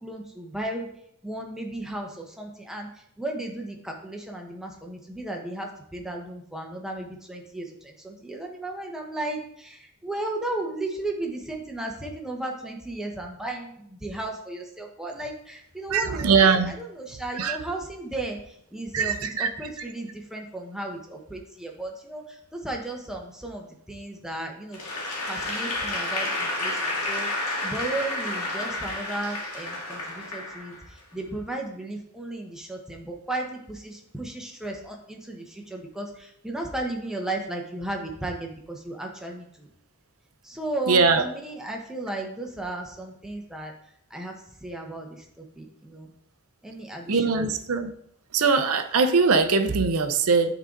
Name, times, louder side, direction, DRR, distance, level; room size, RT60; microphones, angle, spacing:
voice 1, 0.0-0.9 1.2-2.9 3.2-16.5 17.1-18.4 18.7-22.2 22.5-24.8 25.3-30.8 31.1-39.7 40.4-43.7 44.1-44.3 44.6-45.2 45.6-46.1 46.6-47.4, right 2 dB, 5° right, 0 dB, 1.0 m, -35 dB
voice 2, 15.9-16.7 17.3-17.7 18.9-19.9 40.9-41.2 47.1-47.9 48.3-50.5, right 4 dB, 75° right, 9 dB, 0.6 m, -22 dB
Applause / Crowd, 24.7-31.0, left 2 dB, 90° left, 1.8 m, -30 dB
9.0 x 3.9 x 3.8 m, 0.71 s
head